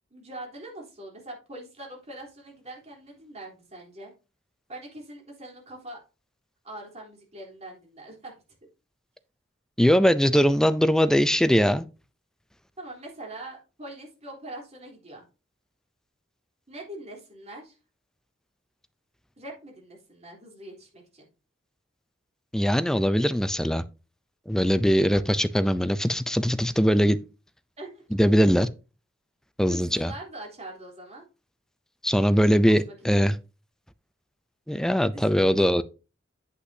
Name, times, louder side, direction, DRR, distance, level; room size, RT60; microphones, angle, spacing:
voice 1, 0.1-4.1 4.7-6.0 6.6-8.4 12.8-15.2 16.7-17.8 19.4-21.3 27.8-28.0 29.7-31.3 32.7-33.3 35.1-35.6, right 1 dB, 35° right, 3.5 m, -43 dB
voice 2, 9.8-11.9 22.5-23.8 24.5-27.2 28.2-28.7 29.6-30.1 32.0-33.4 34.7-35.8, equal, 5° left, 0.4 m, -21 dB
8.5 x 8.1 x 2.7 m
head